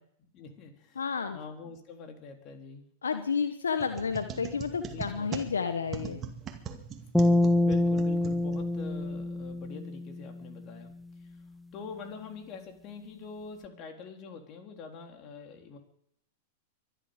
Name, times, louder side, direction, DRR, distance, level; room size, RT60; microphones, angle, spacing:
voice 1, 0.2-1.0 1.3-2.9 4.8-5.5 7.6-10.9 11.2-11.3 11.7-15.8, left 5 dB, 40° left, 4 dB, 3.6 m, -45 dB
voice 2, 1.0-1.4 3.0-6.2, left 5 dB, 85° left, 8 dB, 1.1 m, -31 dB
sound 1, 3.8-8.9, right 7 dB, 30° right, 2.2 m, -41 dB
sound 2, 7.1-10.5, left 1 dB, 5° left, 0.9 m, -26 dB
24.0 x 11.5 x 5.2 m, 0.70 s
hypercardioid pair, 100°, 0 cm